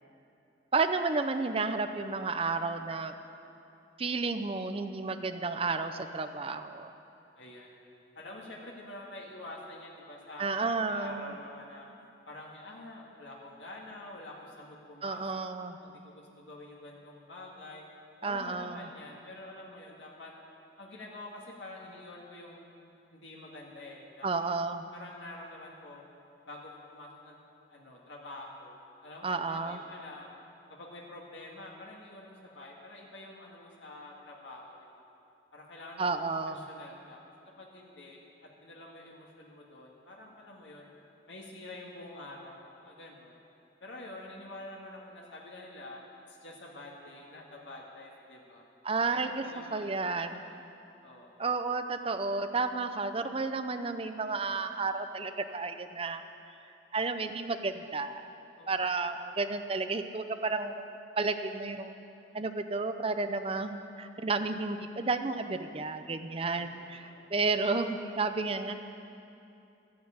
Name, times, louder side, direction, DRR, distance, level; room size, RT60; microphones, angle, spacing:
voice 1, 0.7-3.1 4.0-6.9 10.4-11.3 15.0-15.8 18.2-18.9 24.2-24.8 29.2-29.8 36.0-36.7 48.8-49.4 49.7-50.4 51.4-56.2 56.9-58.3 58.7-60.9 61.2-61.9 62.3-68.7, right 3 dB, 30° right, 9 dB, 0.6 m, -32 dB
voice 2, 7.4-7.8 8.2-11.9 12.3-15.5 15.8-17.8 18.2-20.3 20.8-22.7 23.1-24.3 24.9-26.0 26.5-27.4 27.7-28.8 29.0-30.3 30.7-35.0 35.5-36.1 36.5-37.2 37.6-40.9 41.3-43.4 43.8-46.0 46.3-48.7 49.1-49.7 50.1-50.6 51.0-51.5 58.6-59.0 66.5-67.3, left 2 dB, 75° left, -2 dB, 1.8 m, -47 dB
12.5 x 9.5 x 8.7 m, 2.7 s
head